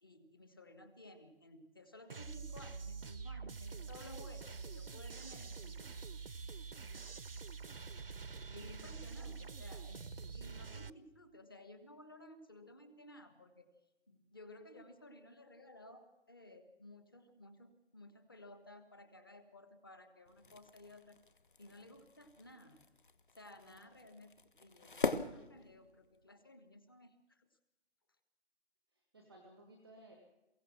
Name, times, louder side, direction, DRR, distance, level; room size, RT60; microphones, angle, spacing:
voice 1, 0.0-6.0 8.5-10.0 10.3-13.7 14.1-21.2 21.6-22.8 23.3-24.3 24.6-27.5, left 1 dB, 20° left, 9 dB, 1.3 m, -56 dB
sound 1, 2.1-10.9, right 5 dB, 55° right, 0.8 m, -46 dB
voice 2, 3.6-4.0 6.8-7.2 9.1-9.9 23.7-23.8 28.9-30.2, right 1 dB, 5° right, 1 dB, 1.0 m, -62 dB
sound 2, 20.3-26.3, left 3 dB, 45° left, 1.4 m, -43 dB
23.0 x 16.0 x 7.3 m, 1.0 s
figure-of-eight pair, 175°, 34 cm